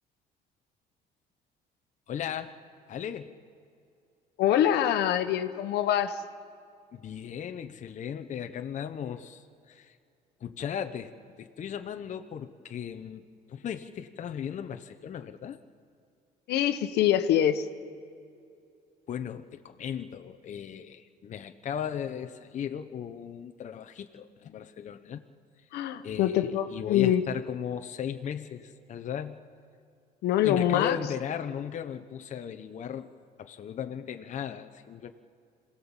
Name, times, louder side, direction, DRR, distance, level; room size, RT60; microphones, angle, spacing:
voice 1, 2.1-2.5 2.9-3.3 6.9-9.4 9.7-10.0 10.4-11.1 11.4-15.6 19.1-25.2 26.0-29.4 30.4-33.1 33.4-35.1, left 8 dB, 45° left, 6 dB, 0.9 m, -36 dB
voice 2, 4.4-6.2 16.5-17.7 25.7-27.2 30.2-31.0, left 11 dB, 75° left, 8 dB, 1.2 m, -24 dB
26.5 x 17.5 x 7.3 m, 2.4 s
cardioid pair, 110°, 17 cm